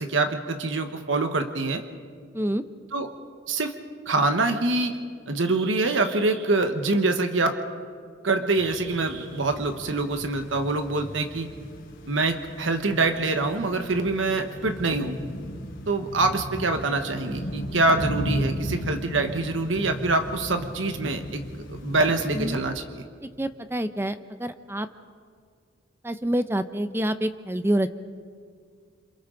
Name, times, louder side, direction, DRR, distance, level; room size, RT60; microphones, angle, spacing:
voice 1, 0.0-1.8 2.9-3.1 3.5-3.7 4.1-5.0 5.3-7.6 8.2-11.5 12.1-15.2 15.9-21.4 21.7-23.0, right 3 dB, 90° right, 6 dB, 1.2 m, -25 dB
sound 1, 8.6-22.7, equal, 90° left, 3.1 m, -36 dB
voice 2, 23.2-24.9 26.0-28.0, right 1 dB, 10° right, 11 dB, 0.7 m, -27 dB
27.5 x 27.0 x 3.9 m, 2.1 s
head